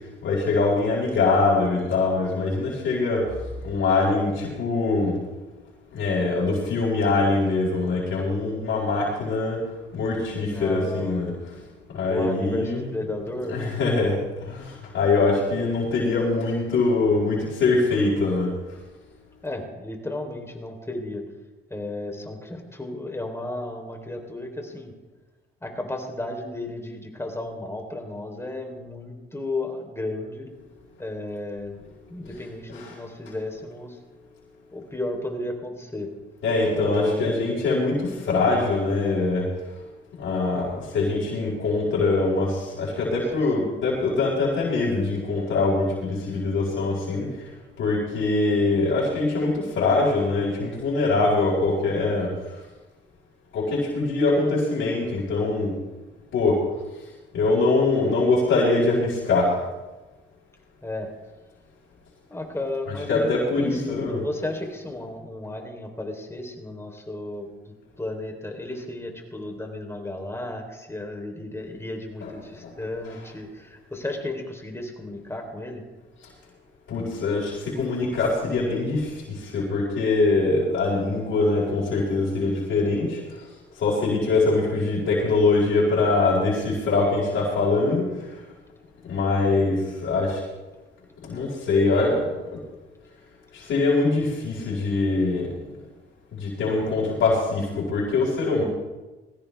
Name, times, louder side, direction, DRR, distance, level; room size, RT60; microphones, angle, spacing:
voice 1, 0.2-3.3 3.6-5.2 5.9-9.6 9.9-11.3 11.9-12.9 13.5-18.5 32.7-32.9 36.4-39.5 40.2-47.3 47.8-52.3 53.5-55.7 56.3-56.6 57.3-59.6 63.1-64.2 72.2-72.3 72.6-72.7 76.9-83.5 83.8-88.1 89.1-90.4 91.2-92.3 93.5-95.6 96.3-98.6, left 3 dB, 75° left, -7 dB, 5.0 m, -23 dB
voice 2, 10.5-11.2 12.1-13.6 19.4-21.2 21.7-24.9 25.6-30.5 31.0-31.8 32.1-34.0 34.7-36.1 36.7-37.3 43.1-43.2 43.6-43.8 60.8-61.1 62.3-67.5 68.0-75.8, left 2 dB, 15° left, 2 dB, 3.6 m, -33 dB
20.5 x 16.0 x 3.5 m, 1.1 s
cardioid pair, 90°, 20 cm